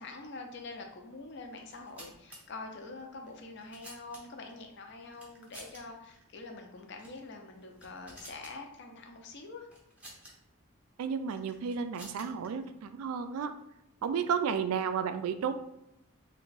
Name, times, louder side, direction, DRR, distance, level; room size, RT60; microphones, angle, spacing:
voice 1, 0.0-9.7, left 3 dB, 50° left, 3 dB, 0.5 m, -45 dB
sound 1, 1.6-2.4 3.3-4.5 5.1-5.8 6.1-6.2 6.9-7.2 7.6-8.5 9.7-10.3 11.3-12.5, right 1 dB, 5° right, 0.6 m, -51 dB
voice 2, 11.0-13.5 14.0-15.5, right 6 dB, 85° right, 9 dB, 0.3 m, -32 dB
3.4 x 2.2 x 3.9 m, 0.84 s
head